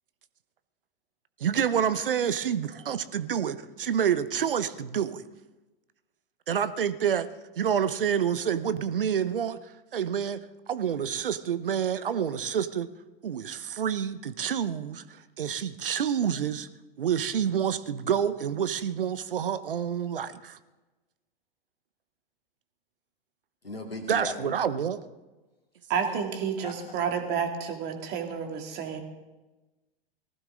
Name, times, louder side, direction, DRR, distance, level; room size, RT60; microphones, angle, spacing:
voice 1, 1.4-5.2 6.5-7.3 7.6-12.9 13.2-16.7 17.0-20.6 24.1-25.0 26.0-26.2, right 8 dB, 65° right, 0.8 m, -28 dB
voice 2, 23.6-24.5 26.6-26.7, left 2 dB, 85° left, 2.5 m, -36 dB
voice 3, 25.9-29.0, right 7 dB, 35° right, 2.2 m, -30 dB
19.0 x 15.0 x 3.8 m
figure-of-eight pair, 95°, 29 cm